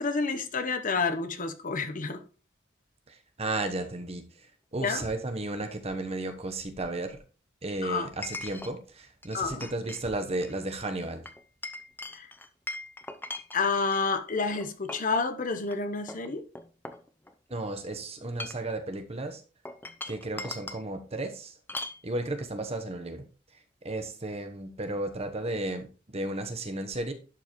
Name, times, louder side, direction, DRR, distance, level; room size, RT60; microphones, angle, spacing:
voice 1, 0.0-2.2 4.8-5.0 7.8-8.1 9.3-9.6 12.1-12.3 13.5-16.4, left 4 dB, 45° left, 0.9 m, -29 dB
voice 2, 3.1-7.2 7.6-11.3 17.5-19.4 20.1-21.6 22.0-23.2 23.5-27.1, right 2 dB, 35° right, 1.0 m, -34 dB
Chink clink, 4.8-4.9 8.2-8.7 9.2-10.0 10.3-10.6 11.3-14.0 14.6-15.1 15.6-15.8 16.1-17.5 18.2-18.7 19.6-20.8 21.7-22.0, left 2 dB, 10° left, 0.6 m, -40 dB
11.5 x 5.3 x 3.1 m
head